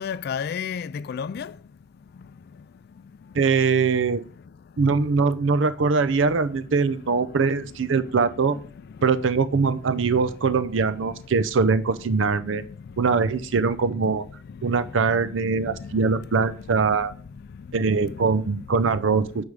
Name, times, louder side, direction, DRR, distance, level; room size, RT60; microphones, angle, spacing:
voice 1, 0.0-3.8 4.2-4.9 6.2-6.4 7.0-7.4 7.9-9.2 9.9-10.2 10.9-11.2 12.3-13.4 13.9-18.8, left 6 dB, 55° left, 0.3 m, -38 dB
voice 2, 3.4-4.2 4.8-8.6 9.0-12.6 13.0-14.2 14.6-17.1 17.7-19.4, right 4 dB, 85° right, 0.5 m, -22 dB
9.6 x 3.5 x 6.5 m
head